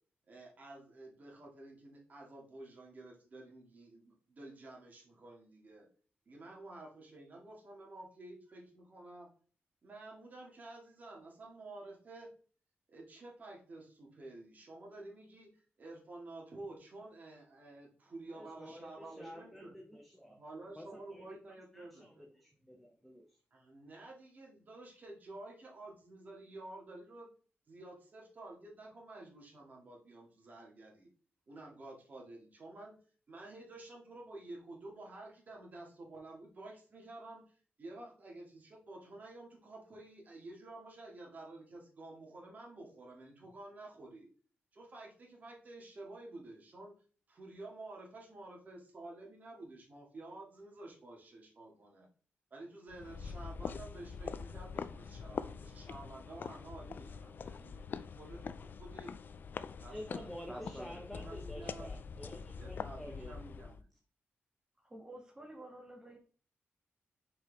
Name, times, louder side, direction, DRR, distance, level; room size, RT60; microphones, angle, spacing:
voice 1, 0.3-5.9 6.3-9.3 9.8-12.3 12.9-19.7 20.3-22.4 23.5-27.3 27.7-31.1 31.5-33.0 33.3-44.3 44.7-46.9 47.3-52.1 52.5-59.1 59.8-61.9 62.6-63.8, right 2 dB, 40° right, -2 dB, 2.2 m, -51 dB
voice 2, 18.3-20.4 20.7-21.4 21.7-23.4 59.9-63.4 63.7-63.8, equal, ahead, 2 dB, 0.8 m, -49 dB
sound 1, 52.9-63.8, left 5 dB, 50° left, 0.4 m, -44 dB
voice 3, 64.8-66.2, right 1 dB, 15° right, 1 dB, 1.8 m, -51 dB
6.2 x 4.7 x 3.5 m, 0.41 s
wide cardioid pair, 135°, 4 cm